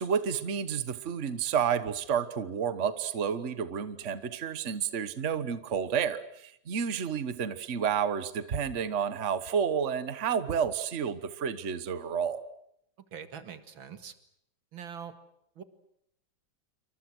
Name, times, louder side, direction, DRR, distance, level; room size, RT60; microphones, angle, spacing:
voice 1, 0.0-12.4, right 7 dB, 40° right, 12 dB, 1.5 m, -30 dB
voice 2, 13.1-14.1 14.7-15.1 15.6-15.7, right 7 dB, 80° right, 10 dB, 2.7 m, -43 dB
28.0 x 25.0 x 6.2 m, 0.75 s
omnidirectional pair, 2.1 m